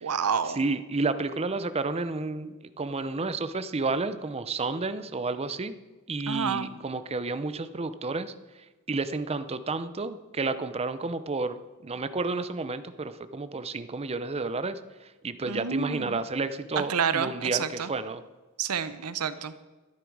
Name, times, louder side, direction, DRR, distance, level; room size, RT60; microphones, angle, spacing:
voice 1, 0.0-0.6 6.3-6.7 15.5-16.2 16.7-17.9 18.6-19.6, right 6 dB, 85° right, 13 dB, 0.8 m, -29 dB
voice 2, 0.6-5.8 6.1-8.3 8.9-14.8 15.2-18.2, right 3 dB, 25° right, 12 dB, 0.6 m, -31 dB
12.5 x 11.0 x 4.8 m, 1.2 s
head